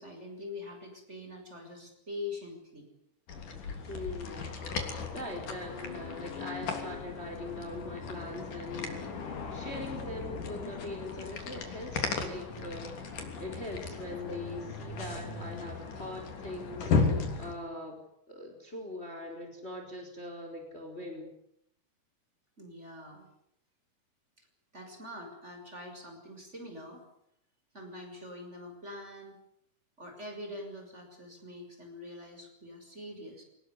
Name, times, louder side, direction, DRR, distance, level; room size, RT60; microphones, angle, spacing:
voice 1, 0.0-2.8 22.6-23.2 24.4-24.5 24.7-27.0 27.7-29.4 30.0-33.4, left 2 dB, 20° right, 3 dB, 6.4 m, -44 dB
sound 1, 3.3-17.5, left 4 dB, 90° left, 4.8 m, -36 dB
voice 2, 3.9-4.5 4.9-13.1 13.4-18.0 18.3-21.3, left 1 dB, 20° left, 3 dB, 4.5 m, -42 dB
25.0 x 20.0 x 9.8 m, 0.74 s
omnidirectional pair, 3.5 m